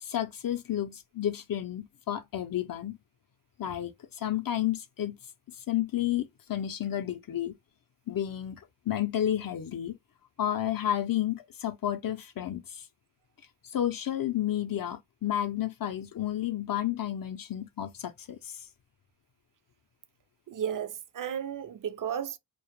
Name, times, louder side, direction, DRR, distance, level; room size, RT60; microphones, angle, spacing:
voice 1, 0.0-3.0 3.6-3.9 4.2-5.2 5.7-7.5 8.1-8.6 8.9-10.0 10.4-12.8 13.7-18.6, left 11 dB, 50° left, 0.5 m, -31 dB
voice 2, 20.5-22.4, right 8 dB, 50° right, 0.4 m, -34 dB
2.2 x 2.0 x 2.9 m
cardioid pair, 60°, 44 cm